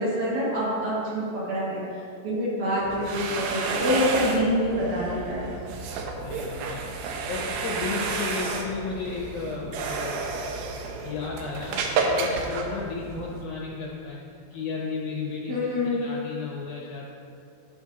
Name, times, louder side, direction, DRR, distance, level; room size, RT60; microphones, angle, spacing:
voice 1, 0.0-1.8 2.2-5.4 15.5-16.0, equal, 50° right, -9 dB, 3.3 m, -26 dB
sound 1, 2.8-13.4, right 4 dB, 85° right, 2.6 m, -31 dB
voice 2, 6.2-6.8 7.3-10.2 11.0-14.2 14.5-17.1, left 4 dB, 75° left, -2 dB, 1.9 m, -34 dB
13.5 x 6.2 x 2.8 m, 2.5 s
omnidirectional pair, 4.2 m